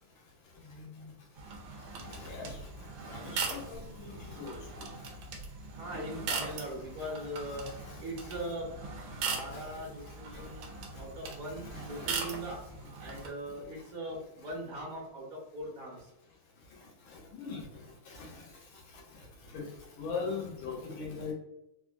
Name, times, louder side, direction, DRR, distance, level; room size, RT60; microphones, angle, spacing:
voice 1, 0.7-1.0 2.1-2.6 3.1-4.6 5.9-6.0 6.5-6.6 7.4-7.6 7.9-8.4 9.5-9.7 10.3-10.4 11.6-12.4 17.3-17.7 18.1-18.4 19.5-19.7 20.0-21.3, left 4 dB, 80° left, -2 dB, 1.8 m, -41 dB
sound 1, 1.4-13.3, right 4 dB, 90° right, 1.4 m, -40 dB
voice 2, 5.7-7.6 8.0-8.8 9.1-12.6 13.0-16.0, right 1 dB, 55° right, -5 dB, 1.2 m, -40 dB
3.9 x 2.4 x 2.3 m, 0.87 s
omnidirectional pair, 2.2 m